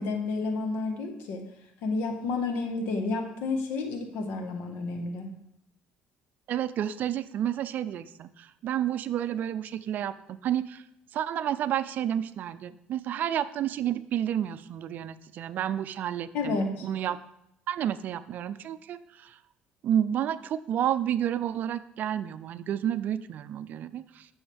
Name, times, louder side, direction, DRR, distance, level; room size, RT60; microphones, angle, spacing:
voice 1, 0.0-1.4 1.8-5.3 16.3-16.9, left 3 dB, 80° left, 4 dB, 1.5 m, -30 dB
voice 2, 6.5-10.8 11.1-16.6 16.8-17.2 17.7-19.4 19.8-24.3, right 10 dB, 55° right, 13 dB, 0.5 m, -30 dB
13.0 x 6.3 x 3.5 m, 0.80 s
cardioid pair, 120°, 4 cm